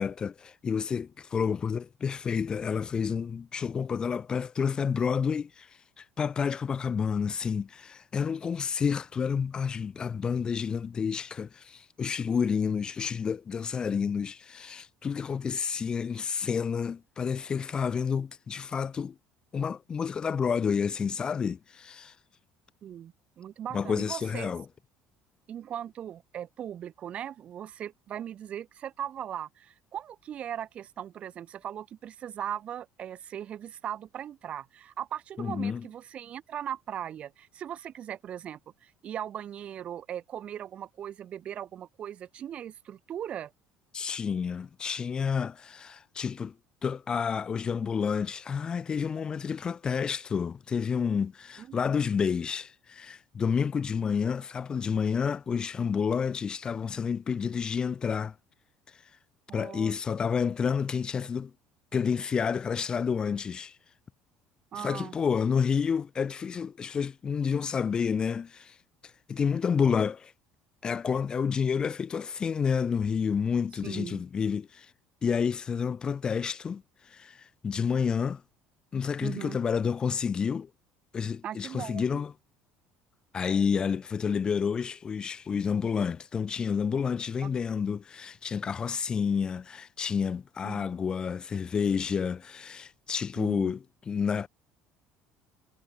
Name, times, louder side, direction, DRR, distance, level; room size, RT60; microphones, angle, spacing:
voice 1, 0.0-19.1 19.5-22.1 23.7-24.6 35.4-35.8 43.9-46.5 46.8-58.3 58.9-59.0 59.5-61.5 61.9-63.8 64.7-68.8 69.3-70.3 70.8-74.9 75.2-78.4 78.9-80.7 81.1-82.3 83.3-93.8 94.1-94.5, left 6 dB, 25° left, 0.5 m, -29 dB
voice 2, 22.8-24.5 25.5-43.5 51.6-51.8 59.5-59.9 64.7-65.2 73.8-74.2 79.2-79.6 81.4-82.2 87.4-87.6 90.6-90.9 93.4-93.7, right 10 dB, 40° right, 1.0 m, -39 dB
cardioid pair, 130°, 3 cm